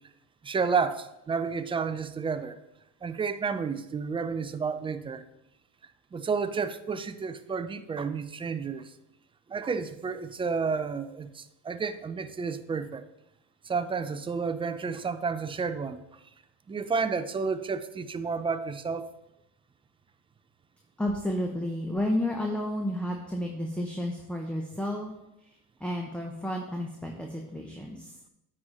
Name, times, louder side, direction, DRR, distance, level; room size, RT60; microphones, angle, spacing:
voice 1, 0.4-2.6 3.0-5.2 6.1-8.9 9.5-13.0 13.6-16.2 16.7-19.1, right 5 dB, 15° right, 11 dB, 0.4 m, -31 dB
voice 2, 21.0-25.1 25.4-28.2, left 1 dB, 5° left, 1 dB, 0.8 m, -32 dB
9.4 x 4.3 x 5.1 m, 0.89 s
cardioid pair, 120°, 34 cm